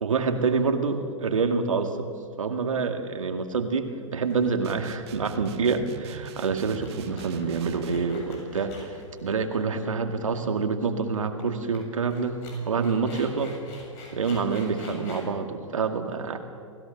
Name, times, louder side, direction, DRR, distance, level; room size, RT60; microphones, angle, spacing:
voice 1, 0.0-2.1 2.4-13.5 14.1-16.4, right 5 dB, 75° right, 6 dB, 2.1 m, -27 dB
sound 1, 3.5-3.8 4.3-4.5 4.8-4.9 5.2-5.5 5.9-9.9 10.1-10.2 11.4-11.5 11.7-11.8 12.1-15.3, left 3 dB, 45° left, 7.5 m, -46 dB
sound 2, 4.6-8.1, right 10 dB, 50° right, 1.5 m, -43 dB
29.0 x 16.5 x 6.7 m, 2.3 s
figure-of-eight pair, 110°, 17 cm